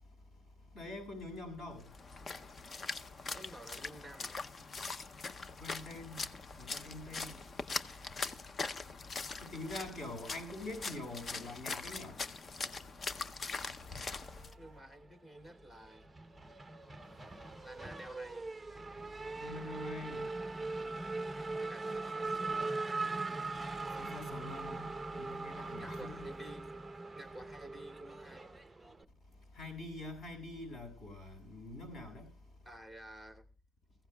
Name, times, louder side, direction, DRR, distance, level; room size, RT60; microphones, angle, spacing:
voice 1, 0.7-1.9 5.6-6.3 6.6-7.4 9.4-12.2 19.4-20.2 24.0-24.9 25.1-26.2 29.5-32.3, left 2 dB, 45° left, 7.1 m, -45 dB
Splash splatter, 1.8-14.5, left 4 dB, 30° left, 0.6 m, -42 dB
voice 2, 3.3-4.3 14.6-16.1 17.6-18.5 21.3-22.9 25.8-26.7 27.2-28.6 32.6-33.5, right 1 dB, 15° left, 2.5 m, -52 dB
Race car auto racing / Accelerating revving vroom, 14.0-15.0 15.4-29.0, right 3 dB, 10° right, 0.7 m, -41 dB
23.5 x 15.5 x 2.3 m
cardioid pair, 155°, 0 cm